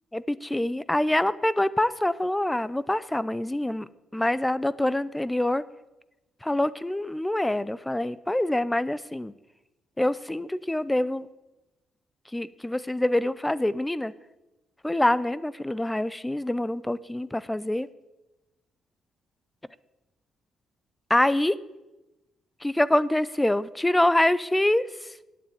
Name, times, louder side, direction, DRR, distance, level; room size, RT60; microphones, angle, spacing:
voice 1, 0.1-5.6 6.4-9.3 10.0-11.3 12.3-14.1 14.8-17.9 21.1-21.6 22.6-25.2, left 1 dB, 10° left, 17 dB, 0.5 m, -25 dB
9.6 x 8.5 x 8.5 m, 1.0 s
cardioid pair, 90°, 0 cm